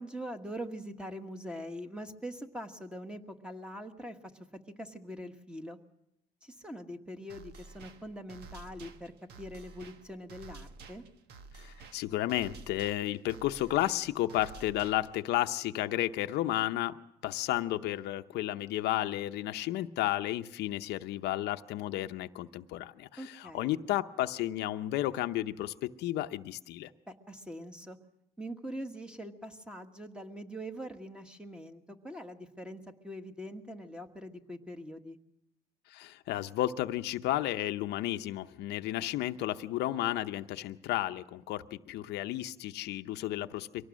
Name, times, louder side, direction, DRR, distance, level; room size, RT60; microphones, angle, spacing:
voice 1, 0.0-4.2 4.8-5.8 6.4-9.1 9.4-11.0 23.2-23.7 27.3-28.0 28.4-35.2, equal, 5° right, 6 dB, 1.5 m, -43 dB
sound 1, 7.3-15.3, right 4 dB, 75° right, 1.4 m, -51 dB
voice 2, 11.5-17.0 17.2-26.9 35.9-43.9, left 14 dB, 80° left, 8 dB, 0.8 m, -32 dB
23.5 x 18.0 x 6.3 m, 0.83 s
cardioid pair, 110°, 17 cm